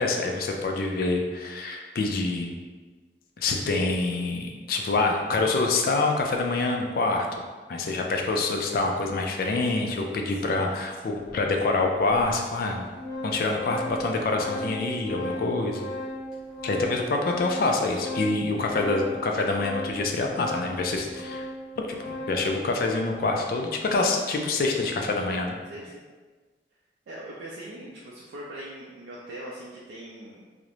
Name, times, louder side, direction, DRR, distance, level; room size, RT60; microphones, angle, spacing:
voice 1, 0.0-2.5 3.4-7.4 7.7-12.9 13.2-15.9 16.6-21.4 21.8-25.6, left 3 dB, 55° left, 2 dB, 0.3 m, -26 dB
voice 2, 10.3-11.2 18.5-18.8 23.3-23.7 25.7-26.1 27.1-30.4, right 1 dB, 85° right, -5 dB, 0.4 m, -42 dB
Organ, 11.3-11.4 12.2-12.3 12.6-22.5, equal, 5° right, 0.7 m, -36 dB
2.4 x 2.0 x 2.9 m, 1.4 s
head